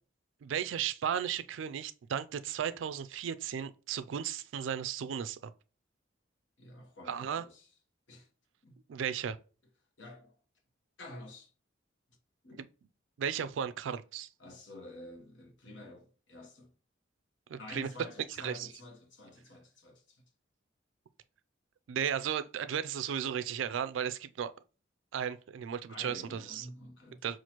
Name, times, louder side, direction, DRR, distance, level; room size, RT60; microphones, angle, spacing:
voice 1, 0.4-5.5 7.1-7.4 8.9-9.4 13.2-14.3 17.5-17.9 18.4-18.7 21.9-24.5 25.1-26.7 27.2-27.4, right 8 dB, 80° right, 0.3 m, -35 dB
voice 2, 6.6-7.7 8.1-8.3 8.6-8.8 10.0-10.4 11.0-11.5 12.4-12.6 14.4-16.7 17.6-20.2 25.9-27.2, left 1 dB, 70° left, 1.1 m, -49 dB
5.9 x 2.5 x 2.9 m
head